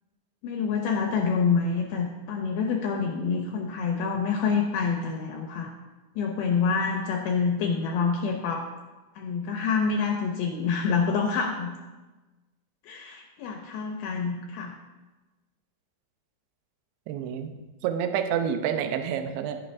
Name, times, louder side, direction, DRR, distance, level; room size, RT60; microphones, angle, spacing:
voice 1, 0.4-5.7 6.2-8.7 9.2-11.8 12.8-14.7, left 5 dB, 80° left, 2 dB, 2.3 m, -27 dB
voice 2, 17.1-17.5 17.8-19.6, right 8 dB, 90° right, 7 dB, 2.0 m, -28 dB
11.5 x 9.0 x 2.6 m, 1.2 s
omnidirectional pair, 4.8 m